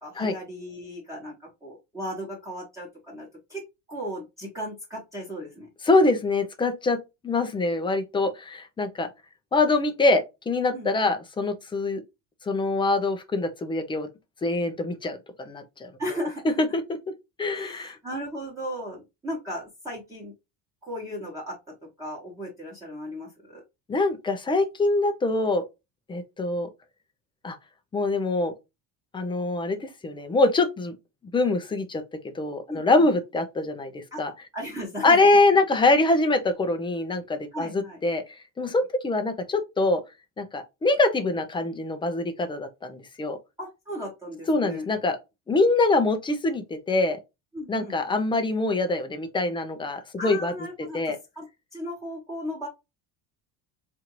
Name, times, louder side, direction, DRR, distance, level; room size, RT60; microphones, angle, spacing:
voice 1, 0.0-3.6 3.9-5.7 10.7-11.1 16.0-16.6 17.5-20.3 20.8-21.6 22.0-23.6 32.7-33.1 34.1-34.2 34.5-35.2 37.5-38.0 43.6-44.9 47.5-47.9 50.2-51.5 51.7-52.7, equal, 10° right, 1.1 m, -36 dB
voice 2, 5.8-7.0 7.2-9.1 9.5-12.0 12.4-14.1 14.4-15.9 16.6-16.8 17.4-18.0 23.9-25.6 26.1-26.7 27.4-27.6 27.9-28.5 29.1-30.9 31.3-32.0 32.3-34.3 35.0-38.2 38.6-40.0 40.4-43.4 44.5-45.2 45.5-47.2 47.7-50.5 50.9-51.2, left 2 dB, 15° left, 0.4 m, -24 dB
4.3 x 2.5 x 2.9 m
cardioid pair, 155°, 39 cm